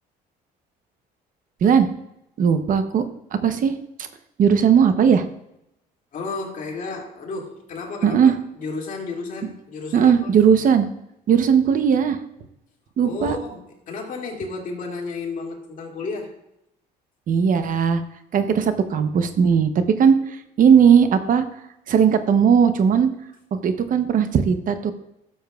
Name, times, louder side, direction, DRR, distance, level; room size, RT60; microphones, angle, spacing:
voice 1, 2.4-3.0 3.3-3.7 4.4-5.3 8.0-8.3 9.9-10.9 11.3-12.2 13.0-13.4 17.3-18.0 18.3-20.2 20.6-21.4 21.9-23.1 23.5-24.9, right 7 dB, 55° right, 10 dB, 0.8 m, -17 dB
voice 2, 6.1-10.3 13.0-16.3, left 3 dB, 50° left, -1 dB, 2.3 m, -32 dB
12.5 x 7.1 x 2.3 m, 0.82 s
cardioid pair, 110°, 17 cm